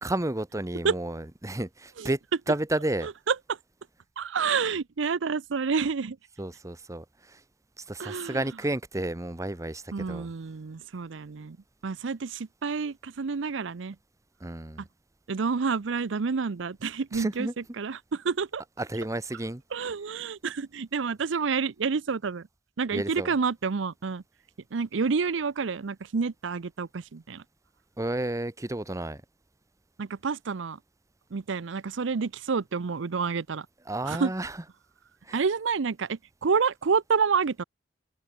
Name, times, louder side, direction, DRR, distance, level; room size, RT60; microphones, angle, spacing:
voice 1, 0.0-2.2 2.5-3.1 6.4-7.4 7.8-10.3 14.4-14.8 17.1-17.5 18.8-19.6 22.9-23.3 28.0-29.2 33.9-34.6 35.2-35.4, right 1 dB, 15° right, 0.9 m, -31 dB
voice 2, 3.0-3.6 4.2-6.2 8.0-8.5 9.9-11.6 11.8-14.0 14.8-14.9 15.3-18.6 19.7-22.5 22.8-24.2 24.7-27.4 30.0-30.8 31.3-33.7 34.0-34.3 35.3-37.6, right 5 dB, 80° right, 0.6 m, -29 dB
open air
head